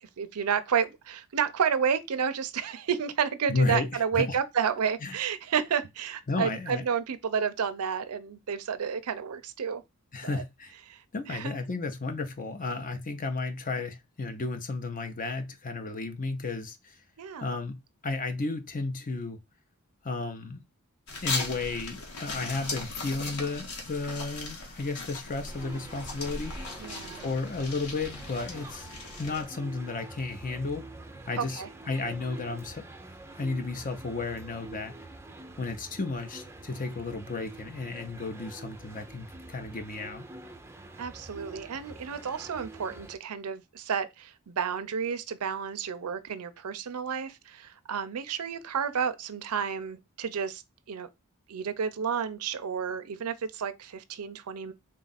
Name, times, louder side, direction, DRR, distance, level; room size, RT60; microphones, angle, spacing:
voice 1, 0.0-9.8 10.2-10.4 10.9-11.6 17.2-17.5 26.8-27.3 31.4-31.7 41.0-50.6 50.9-51.1 51.5-54.7, right 7 dB, 75° right, 0.5 m, -31 dB
voice 2, 3.5-3.9 4.1-4.4 5.0-5.1 6.3-6.8 10.1-10.7 11.1-17.0 17.4-19.4 20.0-20.6 21.2-26.5 27.2-28.9 29.2-30.9 31.3-32.8 33.4-34.9 35.6-40.3, left 3 dB, 40° left, 0.7 m, -33 dB
sound 1, 21.1-29.4, left 3 dB, 75° left, 1.3 m, -38 dB
sound 2, 25.5-43.2, right 2 dB, 10° right, 0.5 m, -46 dB
3.7 x 2.4 x 4.0 m
head